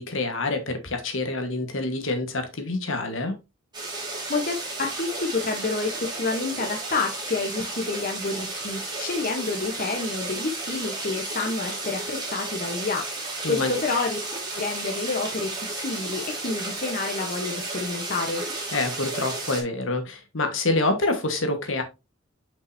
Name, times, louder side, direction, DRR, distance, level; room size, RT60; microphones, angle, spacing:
voice 1, 0.0-3.3 13.4-13.7 18.7-21.8, left 2 dB, 70° left, 1.4 m, -27 dB
sound 1, 3.7-19.6, right 2 dB, 20° right, 2.3 m, -33 dB
voice 2, 4.3-13.1 13.5-14.2 14.6-18.4, left 3 dB, 45° left, 0.9 m, -29 dB
6.5 x 5.4 x 2.7 m
head